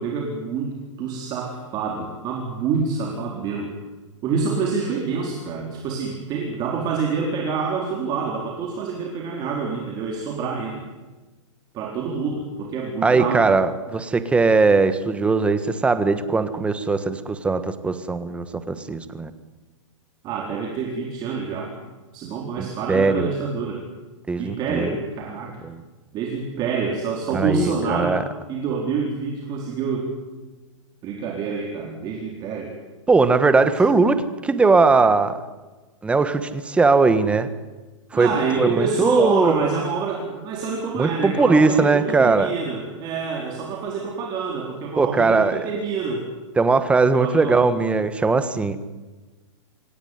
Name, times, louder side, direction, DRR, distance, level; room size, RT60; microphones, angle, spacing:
voice 1, 0.0-3.7 4.2-10.8 11.7-13.5 20.2-21.7 22.1-23.8 24.4-25.6 26.1-28.2 28.5-30.1 31.0-32.7 33.9-34.1 38.1-46.2 47.2-47.6, right 5 dB, 25° right, 0 dB, 4.2 m, -27 dB
voice 2, 13.0-19.3 22.6-23.3 24.3-25.0 25.6-25.8 27.3-28.2 33.1-35.4 36.0-37.5 38.1-39.7 41.0-42.5 45.0-45.7 46.6-48.8, right 4 dB, 5° right, 11 dB, 1.4 m, -19 dB
26.5 x 18.0 x 9.6 m, 1.2 s
hypercardioid pair, 155°, 16 cm